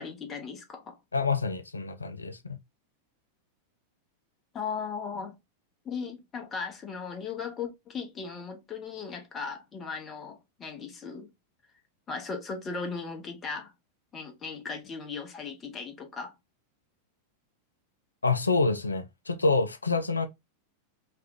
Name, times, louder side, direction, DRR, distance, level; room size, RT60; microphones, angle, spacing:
voice 1, 0.0-1.0 4.5-5.4 5.8-11.3 12.1-13.7 14.1-16.3, left 5 dB, 25° left, 0.8 m, -37 dB
voice 2, 1.1-2.6 18.2-20.3, left 3 dB, 80° left, 0.3 m, -27 dB
2.9 x 2.3 x 3.3 m
figure-of-eight pair, 90°, 0 cm